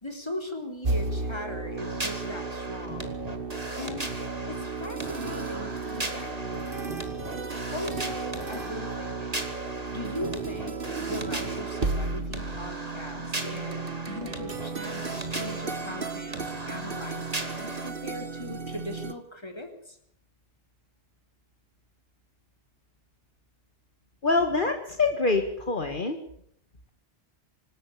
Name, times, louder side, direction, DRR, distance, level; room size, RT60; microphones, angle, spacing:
voice 1, 0.0-3.2 3.8-4.1 4.5-6.8 7.7-9.4 9.9-20.0, left 1 dB, 25° left, 5 dB, 4.1 m, -39 dB
sound 1, 0.8-19.1, right 4 dB, 60° right, 1.8 m, -34 dB
sound 2, 1.8-17.9, right 2 dB, 35° right, 2.9 m, -38 dB
voice 2, 24.2-26.2, left 3 dB, 50° left, 5 dB, 2.1 m, -25 dB
25.5 x 13.0 x 8.5 m, 0.68 s
omnidirectional pair, 1.1 m